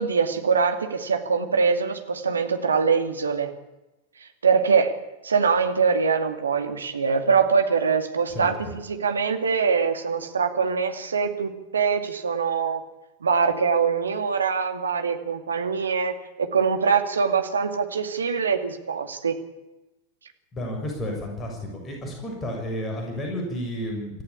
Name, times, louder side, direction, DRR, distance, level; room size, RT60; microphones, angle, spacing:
voice 1, 0.0-3.5 4.2-5.0 5.2-12.8 13.2-19.3, right 5 dB, 70° right, 6 dB, 2.4 m, -23 dB
voice 2, 8.3-8.7 20.5-24.2, equal, 20° left, 1 dB, 6.9 m, -32 dB
26.5 x 14.5 x 8.6 m, 1.1 s
figure-of-eight pair, 90°, 0 cm